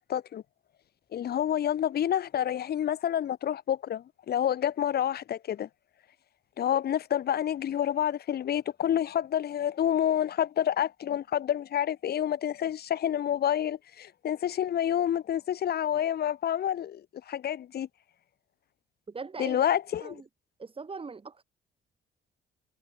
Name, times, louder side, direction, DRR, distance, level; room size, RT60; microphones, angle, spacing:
voice 1, 0.1-0.4 1.1-5.7 6.6-17.0 17.3-17.9 19.4-20.2, left 10 dB, 55° left, 0.7 m, -28 dB
voice 2, 19.1-19.6 20.0-20.2 20.6-21.4, right 4 dB, 25° right, 1.6 m, -40 dB
cardioid pair, 90°, 20 cm